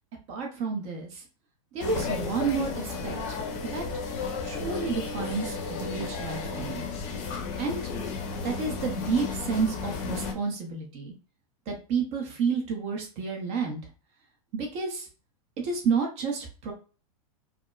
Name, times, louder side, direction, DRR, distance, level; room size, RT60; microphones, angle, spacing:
voice 1, 0.3-1.2 1.7-3.8 4.4-6.8 7.6-7.8 8.4-11.1 11.7-13.8 14.5-15.1 15.6-16.7, right 5 dB, 35° right, 1 dB, 0.8 m, -30 dB
sound 1, 1.8-10.3, left 4 dB, 40° left, 0.7 m, -33 dB
4.7 x 2.0 x 2.3 m, 0.35 s
supercardioid pair, 145°, 18 cm